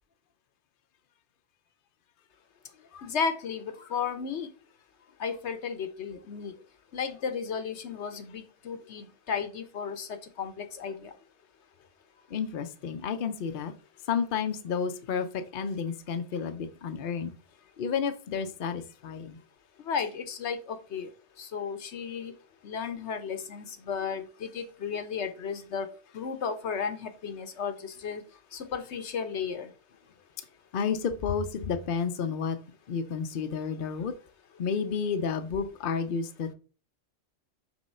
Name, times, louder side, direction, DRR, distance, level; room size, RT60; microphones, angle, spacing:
voice 1, 3.0-4.5 5.2-6.6 6.9-11.1 19.8-21.1 21.4-22.3 22.6-28.2 28.5-29.7, left 6 dB, 70° left, 1.1 m, -34 dB
voice 2, 12.3-13.7 14.1-17.3 17.8-19.4 30.7-32.6 32.9-34.1 34.6-36.5, left 6 dB, 55° left, 0.8 m, -31 dB
6.0 x 3.2 x 5.5 m
omnidirectional pair, 1.2 m